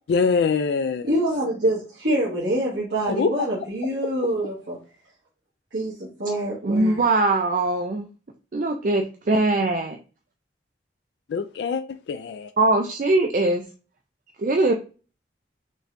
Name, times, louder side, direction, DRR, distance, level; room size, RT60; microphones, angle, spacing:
voice 1, 0.1-1.2 3.1-3.7 11.3-12.5, left 5 dB, 70° left, 0.3 m, -24 dB
voice 2, 1.1-4.8 5.7-7.0, right 1 dB, 85° right, 1.6 m, -25 dB
voice 3, 6.6-8.1 8.5-10.0 12.6-13.6 14.4-14.7, right 2 dB, 45° right, 0.4 m, -21 dB
5.2 x 3.4 x 2.5 m
head